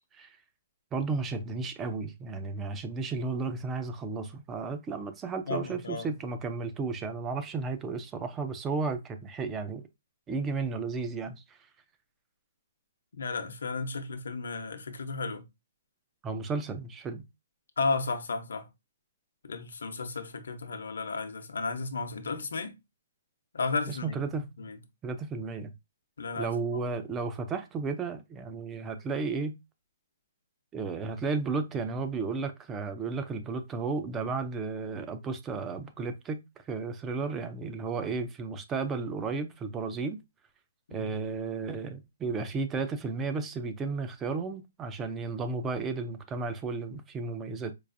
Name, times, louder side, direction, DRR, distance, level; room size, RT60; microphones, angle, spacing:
voice 1, 0.9-9.8 10.3-11.6 16.2-17.3 23.9-24.5 25.0-25.7 26.4-29.6 30.7-40.2 40.9-47.7, right 4 dB, 10° right, 0.3 m, -33 dB
voice 2, 5.5-6.1 13.1-15.4 17.8-18.7 19.4-22.8 23.5-24.2 24.6-24.8 26.2-26.8 40.9-41.1, left 4 dB, 90° left, 0.8 m, -33 dB
4.6 x 2.4 x 2.6 m
hypercardioid pair, 170°, 0 cm